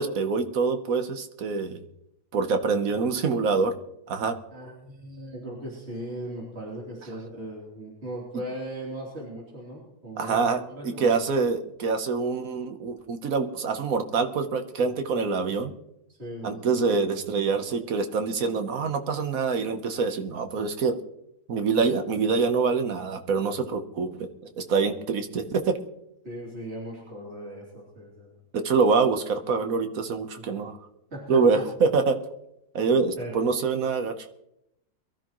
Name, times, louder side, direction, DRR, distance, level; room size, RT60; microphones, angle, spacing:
voice 1, 0.0-1.8 2.3-3.7 4.1-4.4 10.2-15.7 16.4-21.0 21.5-24.3 24.6-25.8 28.5-30.8 31.3-32.2 32.7-34.3, right 4 dB, 60° right, 7 dB, 1.4 m, -25 dB
voice 2, 2.8-3.2 4.5-11.3 16.1-16.9 26.2-28.4 31.1-31.7 33.2-33.4, right 1 dB, 40° right, -4 dB, 3.6 m, -38 dB
22.5 x 13.0 x 3.1 m, 0.83 s
omnidirectional pair, 1.8 m